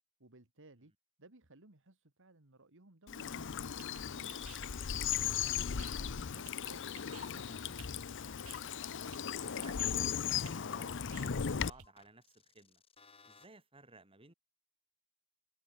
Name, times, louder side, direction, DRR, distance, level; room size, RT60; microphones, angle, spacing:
voice 1, 0.2-0.9 1.2-3.5 3.8-8.1, right 2 dB, 60° right, 2.3 m, -61 dB
Bird vocalization bird call bird song / Stream, 3.1-11.7, left 8 dB, 60° left, 0.7 m, -37 dB
sound 1, 3.3-11.9, right 11 dB, 80° right, 2.7 m, -58 dB
sound 2, 7.1-7.5 8.0-13.5, left 3 dB, 25° left, 7.0 m, -63 dB
voice 2, 9.3-12.8 13.2-14.3, right 3 dB, 25° right, 4.0 m, -59 dB
head